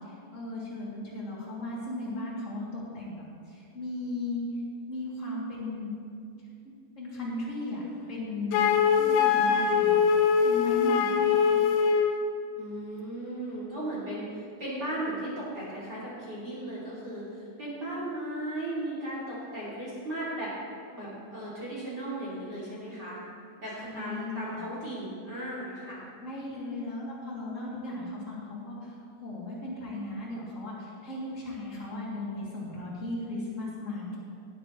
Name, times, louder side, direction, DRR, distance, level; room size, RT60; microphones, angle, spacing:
voice 1, 0.0-3.1 3.5-4.4 4.9-5.9 7.0-7.8 8.1-8.6 9.0-11.4 23.8-24.6 26.2-34.2, left 2 dB, 20° left, -7 dB, 2.3 m, -36 dB
Wind instrument woodwind instrument, 8.5-12.2, left 7 dB, 85° left, 3.2 m, -23 dB
voice 2, 12.6-20.5 20.9-23.2 23.6-26.0, right 1 dB, 25° right, -8 dB, 2.8 m, -36 dB
17.0 x 10.5 x 3.3 m, 2.4 s
omnidirectional pair, 5.5 m